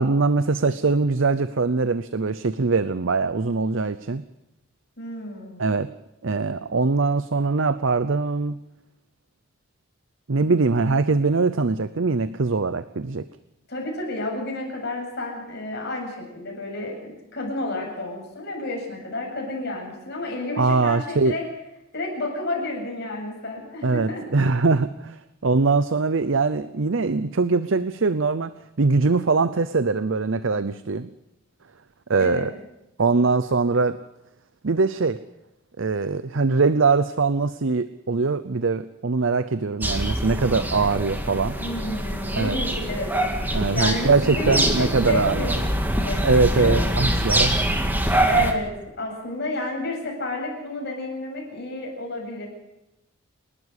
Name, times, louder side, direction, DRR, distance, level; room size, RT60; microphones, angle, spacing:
voice 1, 0.0-4.2 5.6-5.9 6.2-8.6 10.3-13.3 20.6-21.3 23.8-28.5 28.8-31.1 32.1-32.5 33.0-34.0 34.6-35.2 35.8-41.6 42.4-42.6 43.5-45.5 46.2-47.7, right 4 dB, 60° right, 13 dB, 0.7 m, -22 dB
voice 2, 5.0-5.7 13.7-21.4 21.9-24.2 32.1-32.5 41.6-46.8 48.3-48.7 49.0-52.5, left 2 dB, 50° left, 0 dB, 7.7 m, -31 dB
sound 1, 39.8-48.5, right 1 dB, 10° right, 1.9 m, -24 dB
28.5 x 12.5 x 8.3 m, 0.92 s
head